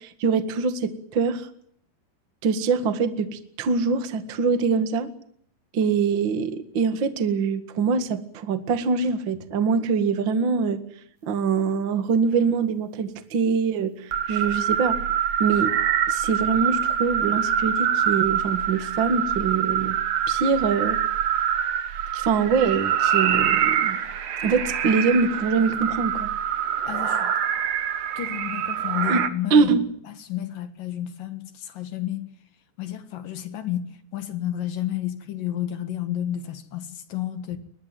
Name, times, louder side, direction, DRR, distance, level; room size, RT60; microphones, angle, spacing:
voice 1, 0.0-1.4 2.4-5.1 5.7-10.8 11.2-15.0 15.4-15.7 16.1-20.0 20.3-21.0 22.1-24.0 24.4-26.3 29.1-29.2 29.5-29.9, right 5 dB, 45° right, 1.5 m, -23 dB
sound 1, 14.1-29.3, right 9 dB, 70° right, 1.5 m, -25 dB
voice 2, 26.9-27.3 28.2-29.7 30.1-32.3 32.8-33.9 34.1-37.6, left 12 dB, 60° left, 2.9 m, -31 dB
23.0 x 21.0 x 9.3 m
omnidirectional pair, 5.1 m